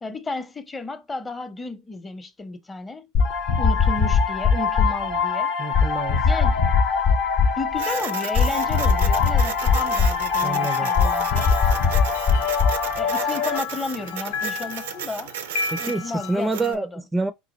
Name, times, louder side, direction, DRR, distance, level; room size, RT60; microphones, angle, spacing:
voice 1, 0.0-3.1 3.6-5.5 6.2-6.6 7.6-11.5 13.0-15.3 15.8-16.9, left 3 dB, 20° left, 0.7 m, -33 dB
sound 1, 3.1-13.6, left 5 dB, 55° left, 0.8 m, -21 dB
voice 2, 5.6-6.2 10.4-10.9 15.7-17.3, right 3 dB, 15° right, 0.4 m, -27 dB
Printer, 7.8-16.7, right 9 dB, 80° right, 0.5 m, -35 dB
sound 2, 9.6-16.7, left 7 dB, 75° left, 0.4 m, -33 dB
3.9 x 2.5 x 4.1 m
hypercardioid pair, 90°, 0 cm